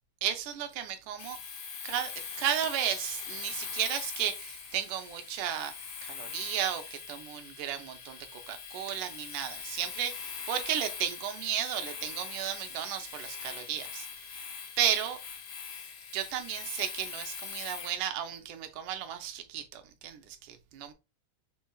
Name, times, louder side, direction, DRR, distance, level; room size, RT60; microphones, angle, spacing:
voice 1, 0.2-1.4 1.8-2.1 2.4-14.4 14.8-15.2 16.1-20.9, right 10 dB, 85° right, 2.3 m, -34 dB
Domestic sounds home sounds, 1.2-18.0, left 6 dB, 60° left, 1.5 m, -42 dB
5.5 x 4.2 x 2.3 m
omnidirectional pair, 3.5 m